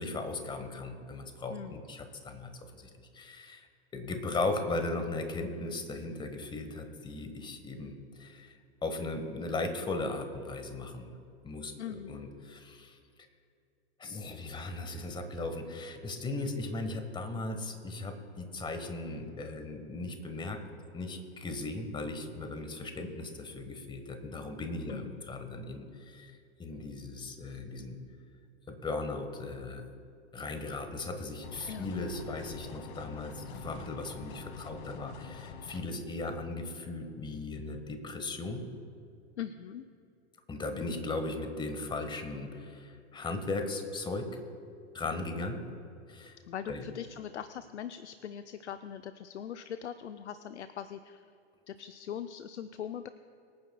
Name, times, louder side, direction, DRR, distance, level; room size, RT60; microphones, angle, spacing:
voice 1, 0.0-3.7 3.9-8.5 8.8-11.1 11.4-13.0 14.0-20.6 20.9-26.3 26.6-28.0 28.7-29.8 30.3-38.6 40.5-44.4 44.9-45.6 46.1-46.4 46.7-46.8, left 2 dB, 15° left, 6 dB, 1.3 m, -37 dB
voice 2, 1.5-1.8 11.8-12.2 24.9-25.2 31.7-31.9 39.4-39.8 46.5-51.2 51.7-53.1, left 9 dB, 85° left, 10 dB, 0.6 m, -41 dB
sound 1, 31.4-35.8, left 5 dB, 45° left, 1.6 m, -45 dB
25.0 x 9.4 x 2.3 m, 2.4 s
hypercardioid pair, 110°, 33 cm